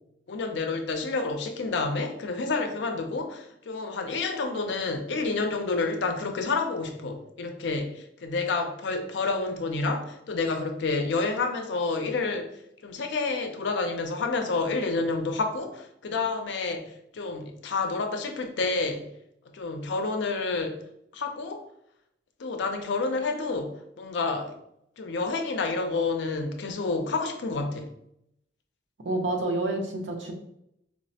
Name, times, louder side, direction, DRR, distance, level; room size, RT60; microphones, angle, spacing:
voice 1, 0.3-12.5 12.8-19.1 19.5-20.8 21.1-21.6 22.4-24.5 25.0-27.9, left 3 dB, 65° left, 6 dB, 0.4 m, -29 dB
voice 2, 29.0-30.3, right 2 dB, 70° right, 2 dB, 0.7 m, -28 dB
4.6 x 2.0 x 2.7 m, 0.76 s
head